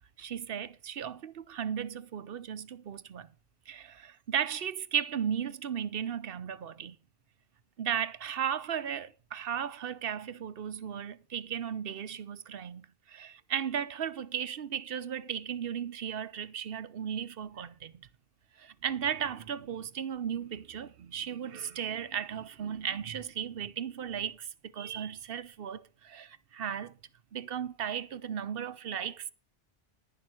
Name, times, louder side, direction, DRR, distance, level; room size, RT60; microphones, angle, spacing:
voice 1, 0.2-3.3 3.7-7.0 7.8-18.1 18.6-24.5 24.7-26.9 27.3-29.3, right 8 dB, 55° right, 0.9 m, -35 dB
11.0 x 10.5 x 4.5 m
omnidirectional pair, 1.2 m